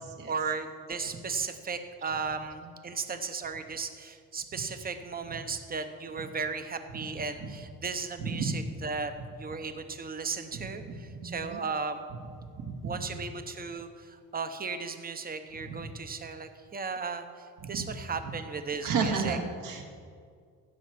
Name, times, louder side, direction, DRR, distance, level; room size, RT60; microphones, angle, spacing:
voice 1, 0.3-12.1 12.8-17.2 17.6-19.4, right 5 dB, 25° right, 8 dB, 0.8 m, -36 dB
voice 2, 8.2-8.6 10.6-11.6 12.5-13.0 15.7-15.9 17.7-17.9 18.8-19.8, right 5 dB, 65° right, 3 dB, 1.7 m, -33 dB
16.0 x 6.3 x 5.9 m, 2.1 s
cardioid pair, 140°, 36 cm